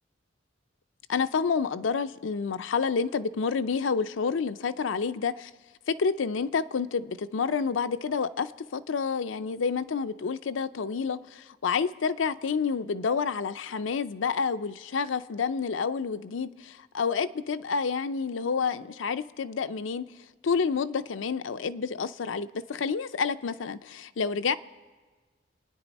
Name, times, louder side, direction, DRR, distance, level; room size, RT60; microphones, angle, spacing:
voice 1, 1.1-5.5 5.9-20.1 20.4-24.6, left 5 dB, 85° left, 0.5 m, -29 dB
29.0 x 9.8 x 4.1 m
head